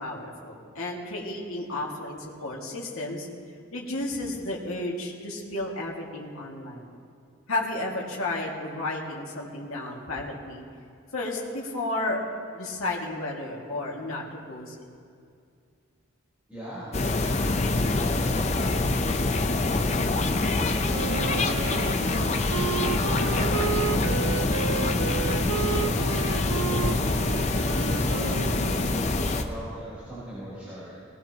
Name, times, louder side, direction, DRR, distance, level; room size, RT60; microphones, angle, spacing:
voice 1, 0.0-3.3 3.7-6.8 7.5-10.6 11.1-12.2 12.5-14.8, left 2 dB, 85° left, -3 dB, 2.1 m, -32 dB
voice 2, 16.5-19.3 19.8-20.5 21.0-22.3 23.0-27.2 27.9-30.9, right 1 dB, 5° right, -10 dB, 3.7 m, -40 dB
sound 1, 16.9-29.4, left 2 dB, 35° left, 0.6 m, -25 dB
Wind instrument woodwind instrument, 20.9-29.0, right 8 dB, 85° right, 0.4 m, -33 dB
19.0 x 17.5 x 2.9 m, 2.3 s
head